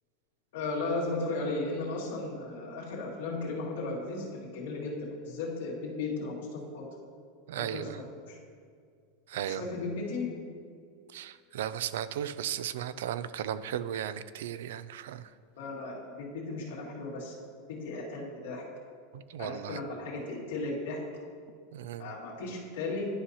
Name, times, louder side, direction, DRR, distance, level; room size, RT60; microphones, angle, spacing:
voice 1, 0.5-5.0 5.2-6.8 7.5-8.4 9.6-10.3 15.6-17.3 17.8-18.6 19.4-21.0 22.0-23.1, left 3 dB, 80° left, -4 dB, 2.1 m, -35 dB
voice 2, 7.5-8.0 9.3-9.6 11.1-15.3 19.1-19.8 21.7-22.2, right 10 dB, 85° right, 14 dB, 0.3 m, -36 dB
11.5 x 5.5 x 2.9 m, 2.2 s
supercardioid pair, 180°, 0 cm